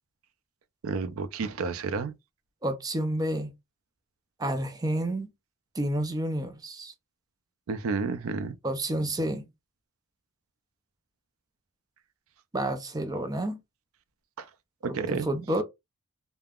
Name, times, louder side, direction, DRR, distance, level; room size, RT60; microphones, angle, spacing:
voice 1, 0.8-2.1 7.7-8.6 14.4-14.5 14.8-15.3, right 4 dB, 70° right, 0.4 m, -31 dB
voice 2, 2.6-3.5 4.4-5.3 5.8-6.9 8.6-9.5 12.5-13.6 14.9-15.6, right 1 dB, 15° right, 0.5 m, -30 dB
3.4 x 2.2 x 2.3 m
head